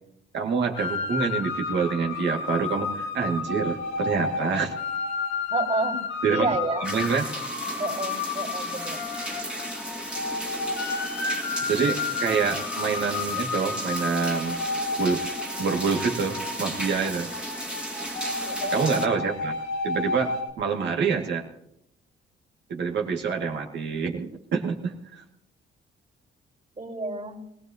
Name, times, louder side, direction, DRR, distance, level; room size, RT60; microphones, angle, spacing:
voice 1, 0.3-4.8 6.2-6.5 6.8-7.2 11.7-14.6 15.0-17.3 18.7-19.6 19.8-21.4 22.7-25.2, right 5 dB, 65° right, 2 dB, 2.2 m, -27 dB
sound 1, 0.7-20.5, left 4 dB, 75° left, 2.4 m, -31 dB
voice 2, 5.5-6.0 6.3-6.9 7.8-9.0 18.5-18.7 26.8-27.4, right 3 dB, 35° right, -5 dB, 3.6 m, -29 dB
sound 2, 6.8-19.1, right 1 dB, 5° right, 1.9 m, -35 dB
21.0 x 17.5 x 2.9 m, 0.78 s
cardioid pair, 90°, 20 cm